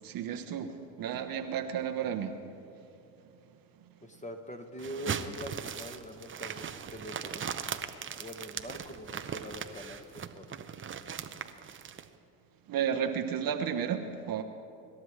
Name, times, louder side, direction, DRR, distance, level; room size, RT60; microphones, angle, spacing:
voice 1, 0.0-2.3 12.7-14.4, right 8 dB, 45° right, 7 dB, 1.1 m, -32 dB
voice 2, 4.0-7.5 8.2-10.1 10.4-10.5, equal, 15° left, 4 dB, 1.6 m, -43 dB
sound 1, 4.8-12.1, right 7 dB, 25° right, 0.8 m, -39 dB
26.0 x 12.5 x 3.3 m, 2.7 s
hypercardioid pair, 75°, 47 cm